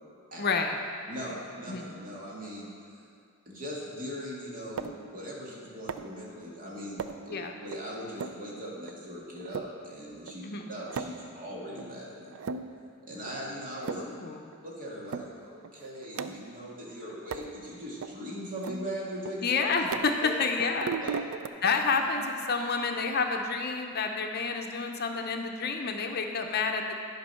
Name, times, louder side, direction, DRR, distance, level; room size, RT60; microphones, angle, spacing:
voice 1, 0.4-0.8 1.7-1.9 7.3-7.5 10.4-10.7 13.9-14.5 19.4-21.0 21.6-27.0, left 4 dB, 50° left, 4 dB, 0.6 m, -29 dB
voice 2, 1.1-2.7 3.5-7.4 7.6-12.4 13.1-14.0 14.6-19.5 20.2-20.3 21.0-21.3 21.9-22.0, equal, 40° right, -5 dB, 2.1 m, -40 dB
sound 1, 4.8-5.1 5.9-6.2 7.0-7.3 7.7-7.8 8.2-8.4 8.9-9.0 9.4-9.7 10.3-10.4 10.6-11.3 11.8-11.9 12.3-12.9 13.3-13.4 13.7-14.2 14.5-14.6 15.1-15.3 15.6-16.6 17.3-17.5 18.0-18.1 18.6-20.3 20.6-21.5, right 5 dB, 75° right, 0.4 m, -37 dB
12.0 x 5.3 x 5.6 m, 2.4 s
head